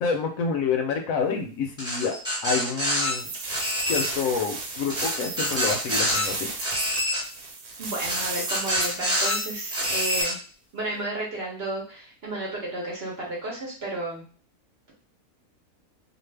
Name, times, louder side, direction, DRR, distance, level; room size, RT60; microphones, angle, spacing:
voice 1, 0.0-2.1 2.4-3.3 3.9-6.5, left 5 dB, 70° left, 4 dB, 0.9 m, -28 dB
sound 1, 1.8-3.1 3.5-4.1 4.9-6.2 6.6-7.2 8.0-9.4 9.7-10.3, equal, 5° right, 0.9 m, -27 dB
sound 2, 3.1-10.2, right 3 dB, 85° right, 1.3 m, -33 dB
voice 2, 7.8-10.4 10.7-14.2, right 2 dB, 50° right, -2 dB, 0.9 m, -32 dB
2.5 x 2.4 x 3.3 m, 0.40 s
omnidirectional pair, 1.6 m